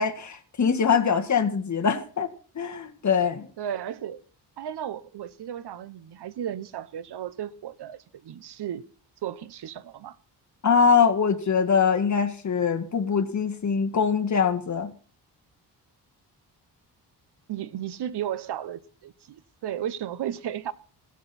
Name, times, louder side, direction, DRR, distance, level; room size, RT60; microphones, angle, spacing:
voice 1, 0.0-2.3 2.6-3.5 10.6-14.9, left 6 dB, 45° left, 1.9 m, -23 dB
voice 2, 3.6-4.2 4.6-8.8 9.2-10.2 17.5-20.7, right 10 dB, 75° right, 1.0 m, -34 dB
17.5 x 12.5 x 4.3 m
cardioid pair, 115°, 40 cm